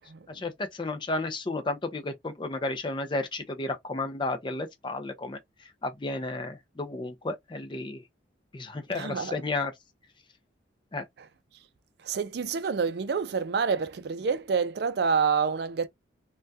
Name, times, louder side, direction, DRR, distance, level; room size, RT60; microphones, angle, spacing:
voice 1, 0.3-5.4 5.8-8.0 8.5-9.7 10.9-11.0, left 2 dB, 25° left, 0.4 m, -32 dB
voice 2, 8.9-9.3 12.0-15.9, right 5 dB, 60° right, 0.4 m, -27 dB
3.4 x 2.2 x 2.6 m
head